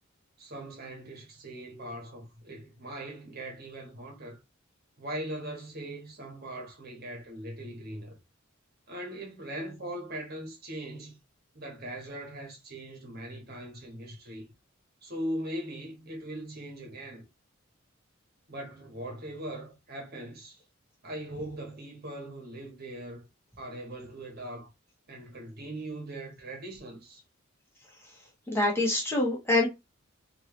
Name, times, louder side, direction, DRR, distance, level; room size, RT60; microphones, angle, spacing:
voice 1, 0.4-4.4 5.0-8.2 8.9-11.2 11.5-14.5 15.0-17.3 18.5-20.6 21.0-23.3 23.6-24.7 25.1-27.2, right 1 dB, 50° right, 1.5 m, -40 dB
voice 2, 28.5-29.7, left 2 dB, 10° left, 1.2 m, -25 dB
3.6 x 3.0 x 3.1 m
head